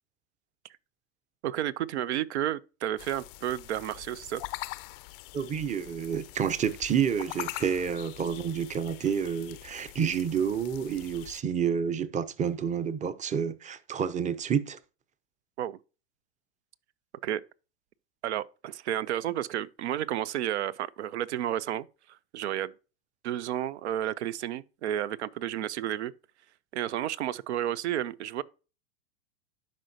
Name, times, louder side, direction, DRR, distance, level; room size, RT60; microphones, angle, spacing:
voice 1, 1.4-4.4 15.6-15.8 17.2-17.4 18.2-21.9 22.3-22.7 23.2-26.1 26.7-28.4, right 11 dB, 70° right, 0.6 m, -31 dB
sound 1, 3.0-11.4, left 21 dB, 55° left, 0.5 m, -43 dB
voice 2, 5.3-14.8, right 7 dB, 20° right, 0.7 m, -29 dB
12.0 x 5.2 x 2.8 m
hypercardioid pair, 90°, 34 cm